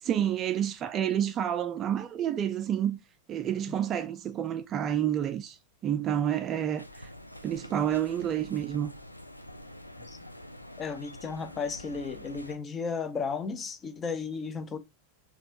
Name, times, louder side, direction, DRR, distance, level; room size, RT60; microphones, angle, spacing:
voice 1, 0.0-3.0 3.3-5.6 5.8-7.1 7.4-8.9, right 10 dB, 30° right, 0.3 m, -29 dB
sound 1, 6.8-12.6, left 1 dB, 90° left, 0.3 m, -46 dB
voice 2, 10.8-14.8, left 5 dB, 20° left, 0.6 m, -34 dB
4.2 x 2.3 x 2.5 m
figure-of-eight pair, 90°, 0 cm